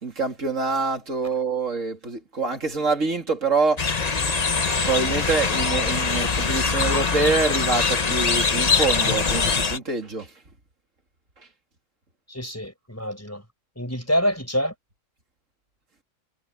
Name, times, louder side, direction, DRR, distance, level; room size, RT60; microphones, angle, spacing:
voice 1, 0.0-3.9 4.8-10.3, right 4 dB, 70° right, 3.3 m, -25 dB
sound 1, 3.8-9.8, left 5 dB, 35° left, 1.0 m, -23 dB
voice 2, 12.3-13.4 13.8-14.7, equal, 10° left, 5.9 m, -26 dB
omnidirectional pair, 1.4 m